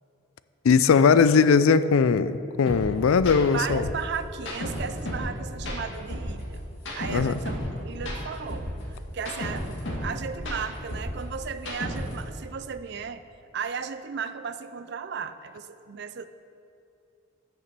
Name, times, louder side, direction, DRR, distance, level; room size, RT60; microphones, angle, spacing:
voice 1, 0.6-3.8 7.1-7.4, left 5 dB, 80° left, 14 dB, 0.4 m, -19 dB
sound 1, 2.7-2.8 3.1-3.3 3.7-5.3 5.6-7.7 8.0-10.1 10.3-12.2, equal, 60° left, 2.1 m, -33 dB
voice 2, 3.5-6.6 6.9-13.2 13.5-16.3, right 6 dB, 50° right, 12 dB, 0.4 m, -35 dB
8.6 x 6.9 x 6.8 m, 2.7 s
head